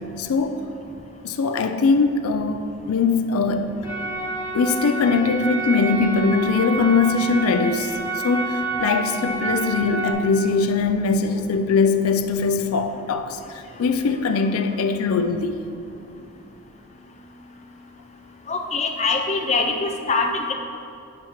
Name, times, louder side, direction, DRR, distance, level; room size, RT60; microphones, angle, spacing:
voice 1, 0.2-0.6 1.2-3.9 4.5-15.6, left 4 dB, 90° left, 8 dB, 0.4 m, -21 dB
sound 1, 3.8-10.1, right 3 dB, 15° right, 1.5 m, -28 dB
voice 2, 18.5-20.5, left 3 dB, 30° left, 2 dB, 0.5 m, -23 dB
10.5 x 5.7 x 3.0 m, 2.5 s
head